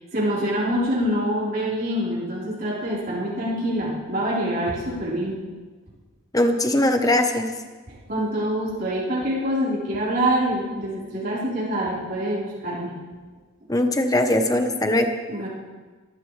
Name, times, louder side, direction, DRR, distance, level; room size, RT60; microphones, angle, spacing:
voice 1, 0.1-5.4 7.9-12.9 15.3-15.5, equal, 45° right, -8 dB, 4.6 m, -25 dB
voice 2, 6.3-7.5 13.7-15.1, left 1 dB, 15° left, 5 dB, 1.1 m, -20 dB
23.5 x 14.5 x 3.4 m, 1.4 s
head